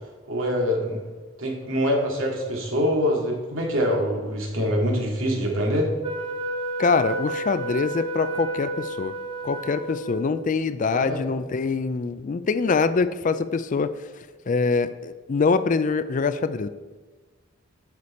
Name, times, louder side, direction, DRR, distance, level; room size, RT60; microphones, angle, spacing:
voice 1, 0.3-1.0 1.4-5.9 10.9-11.2, equal, 85° right, 0 dB, 2.2 m, -24 dB
Wind instrument woodwind instrument, 6.0-10.4, right 2 dB, 25° right, 0.8 m, -31 dB
voice 2, 6.8-9.1 9.4-13.9 14.5-16.7, left 4 dB, 40° left, 13 dB, 0.4 m, -24 dB
9.5 x 6.6 x 4.2 m, 1.3 s
head